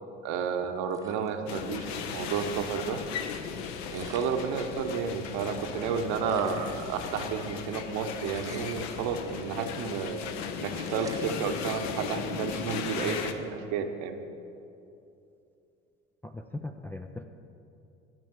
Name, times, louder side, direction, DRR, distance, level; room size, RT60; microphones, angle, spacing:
voice 1, 0.2-3.0 3.9-10.2 10.6-14.2, right 6 dB, 55° right, 6 dB, 1.0 m, -31 dB
sound 1, 0.9-2.1 2.4-2.5 3.5-3.6 3.9-5.1 5.5-5.6 5.8-5.9 6.3-7.8 8.3-9.6 9.9-10.2 10.5-10.6 10.8-12.2 12.7-13.0, right 2 dB, 10° right, 1.1 m, -48 dB
sound 2, 1.5-13.3, left 7 dB, 50° left, 0.8 m, -37 dB
voice 2, 16.2-17.2, left 2 dB, 5° left, 4 dB, 0.4 m, -39 dB
12.5 x 5.1 x 7.1 m, 2.6 s
figure-of-eight pair, 60°, 36 cm